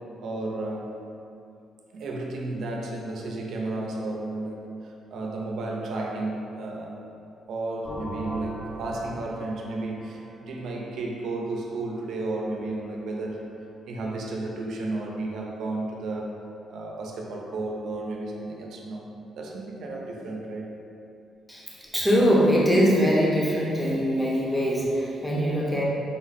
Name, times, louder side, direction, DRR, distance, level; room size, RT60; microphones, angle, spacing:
voice 1, 0.2-1.0 1.9-7.0 7.5-13.5 13.9-16.4 16.7-19.1 19.4-20.7, right 2 dB, 70° right, -1 dB, 0.6 m, -33 dB
sound 1, 7.8-11.6, equal, 45° left, 1.4 m, -39 dB
voice 2, 21.9-25.8, equal, 5° left, -5 dB, 0.9 m, -22 dB
5.5 x 2.0 x 4.1 m, 2.7 s
cardioid pair, 90°, 0 cm